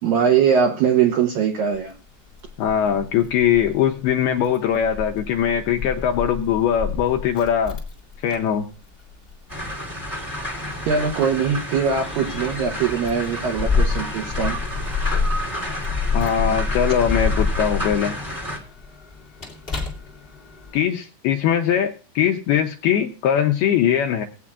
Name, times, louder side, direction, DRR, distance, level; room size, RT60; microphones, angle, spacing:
voice 1, 0.0-1.9 10.9-14.6, right 7 dB, 80° right, 3 dB, 2.1 m, -21 dB
Keys jangling, 1.7-20.8, left 4 dB, 55° left, 0.6 m, -29 dB
voice 2, 2.6-7.8 8.2-8.7 16.1-18.2 20.7-24.3, left 9 dB, 85° left, 4 dB, 2.3 m, -21 dB
sound 1, 9.5-18.6, equal, 30° right, 0.3 m, -31 dB
19.0 x 8.4 x 2.4 m, 0.36 s
omnidirectional pair, 5.1 m